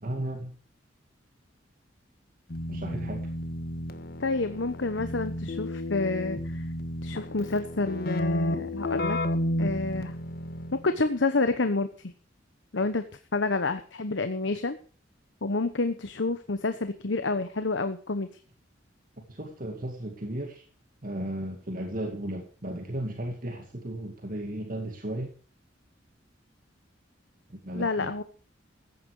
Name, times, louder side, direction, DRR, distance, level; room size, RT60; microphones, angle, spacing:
voice 1, 0.0-0.6 2.7-3.3 19.2-20.7 21.0-25.3 27.5-28.1, right 1 dB, 45° right, 3 dB, 2.2 m, -35 dB
Keyboard (musical), 2.5-10.9, left 1 dB, 55° left, 1.6 m, -32 dB
voice 2, 4.2-6.6 7.0-9.2 9.6-10.1 10.8-12.1 12.7-13.0 13.3-14.8 15.4-18.3 27.7-28.2, left 3 dB, 75° left, 10 dB, 1.1 m, -28 dB
15.0 x 10.0 x 4.8 m, 0.41 s
head